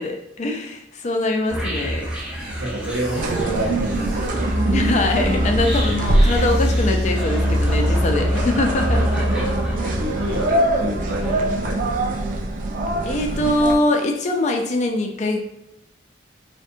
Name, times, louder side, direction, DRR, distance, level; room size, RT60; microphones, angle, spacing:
voice 1, 0.0-2.1 4.7-9.0 13.1-15.4, left 2 dB, 40° left, 2 dB, 0.4 m, -22 dB
sound 1, 1.5-10.7, equal, 5° right, 0.6 m, -24 dB
voice 2, 2.4-4.4 9.5-12.4, right 1 dB, 75° right, -6 dB, 0.7 m, -29 dB
sound 2, 3.2-13.8, right 2 dB, 45° right, 0.3 m, -24 dB
2.6 x 2.1 x 2.5 m, 0.86 s
head